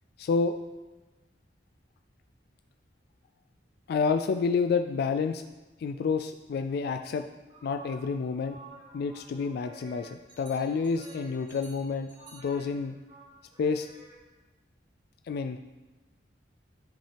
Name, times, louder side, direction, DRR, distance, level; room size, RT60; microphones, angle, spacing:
voice 1, 0.2-0.5 3.9-5.4 5.8-7.2 7.6-8.6 8.9-13.0 13.6-13.9 15.3-15.6, left 5 dB, 60° left, 8 dB, 0.3 m, -29 dB
sound 1, 7.5-14.2, right 2 dB, 25° right, 1.7 m, -51 dB
10.5 x 5.4 x 3.4 m, 1.1 s
head